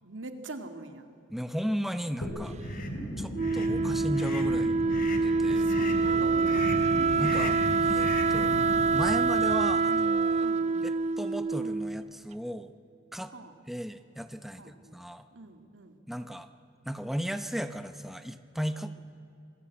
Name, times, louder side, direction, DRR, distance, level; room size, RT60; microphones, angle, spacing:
voice 1, 0.0-1.1 5.5-7.3 10.4-10.9 13.3-13.5 14.6-15.0 15.3-16.0 18.8-18.9, right 2 dB, 85° right, 7 dB, 2.2 m, -43 dB
voice 2, 1.3-2.5 3.2-5.7 7.2-8.5 8.9-10.5 10.8-10.9 11.2-12.7 13.1-13.3 13.7-15.3 16.1-16.5 16.9-18.9, equal, ahead, 9 dB, 0.8 m, -35 dB
sound 1, 2.2-9.2, equal, 80° left, 5.2 m, -36 dB
sound 2, 2.6-2.9 3.4-3.7 4.1-4.5 4.9-5.3 5.7-6.0 6.4-6.9 7.2-7.7 8.0-8.4, left 6 dB, 50° left, 2.9 m, -41 dB
Wind instrument woodwind instrument, 3.3-12.1, right 4 dB, 35° right, 0.5 m, -26 dB
27.5 x 20.0 x 8.6 m, 2.7 s
head